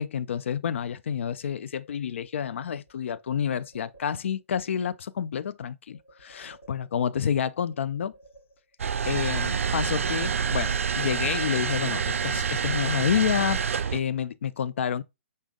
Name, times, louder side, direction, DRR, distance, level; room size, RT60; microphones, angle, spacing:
voice 1, 0.0-8.1 9.1-13.6 13.9-15.0, left 8 dB, 60° left, 0.4 m, -29 dB
sound 1, 2.5-4.4 5.9-7.2 7.6-8.9 9.3-10.7 11.0-12.4 12.7-14.1, right 2 dB, 85° left, 3.1 m, -57 dB
sound 2, 8.8-14.0, right 6 dB, 70° right, 0.4 m, -27 dB
5.4 x 3.4 x 2.3 m
figure-of-eight pair, 125°, 8 cm